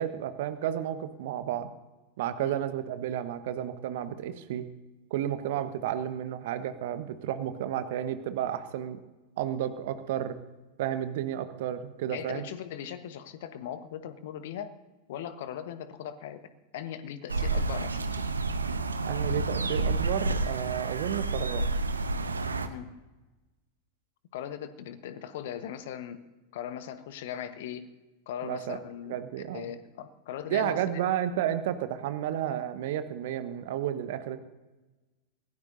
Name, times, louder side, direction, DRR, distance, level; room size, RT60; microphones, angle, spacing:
voice 1, 0.0-1.7 2.2-4.7 5.1-9.0 9.4-10.4 10.8-12.4 19.0-21.6 28.4-28.8 29.1-29.7 30.5-34.4, right 11 dB, 55° right, 11 dB, 1.1 m, -32 dB
voice 2, 12.1-14.7 15.1-16.4 16.7-18.2 22.6-22.9 24.3-26.2 26.5-27.9 28.3-29.2 29.5-31.1, left 9 dB, 55° left, 11 dB, 1.1 m, -39 dB
sound 1, 17.3-22.7, right 3 dB, 75° right, 0.9 m, -29 dB
24.0 x 17.0 x 2.7 m, 1.1 s
figure-of-eight pair, 90°, 0 cm